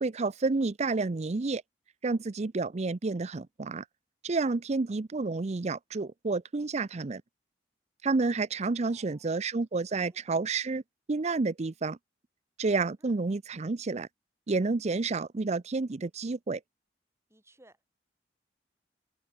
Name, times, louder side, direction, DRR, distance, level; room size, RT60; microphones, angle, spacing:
voice 1, 0.0-1.6 2.0-3.9 4.2-7.2 8.0-10.8 11.1-12.0 12.6-14.1 14.5-16.6, right 3 dB, 40° right, 0.5 m, -30 dB
voice 2, 8.9-9.4 10.1-10.3 13.0-13.2 17.3-17.8, right 1 dB, 15° right, 4.5 m, -61 dB
head